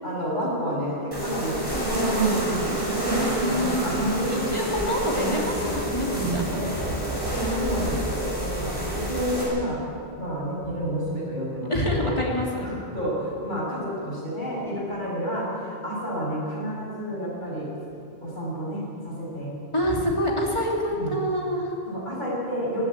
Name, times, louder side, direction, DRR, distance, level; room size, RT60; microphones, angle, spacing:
voice 1, 0.0-4.6 6.5-9.8 10.2-12.1 12.6-15.5 15.8-17.7 18.2-19.5 20.9-21.2 21.9-22.9, equal, 50° left, -5 dB, 7.0 m, -30 dB
sound 1, 1.1-9.4, right 2 dB, 20° right, 5.9 m, -27 dB
voice 2, 3.1-6.7 7.4-7.7 11.7-12.7 19.7-21.7, left 1 dB, 30° left, -3 dB, 3.4 m, -27 dB
17.0 x 16.0 x 9.7 m, 2.5 s
omnidirectional pair, 1.1 m